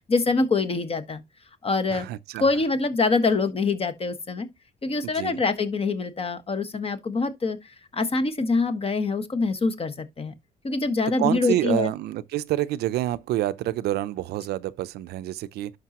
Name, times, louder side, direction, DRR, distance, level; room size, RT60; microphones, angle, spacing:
voice 1, 0.1-1.2 1.6-2.1 2.4-4.5 4.8-10.3 10.6-11.9, left 3 dB, 35° left, 1.4 m, -25 dB
voice 2, 1.9-2.4 5.0-5.4 11.2-15.8, right 14 dB, 80° right, 0.5 m, -28 dB
11.0 x 5.4 x 2.9 m
cardioid pair, 90°, 16 cm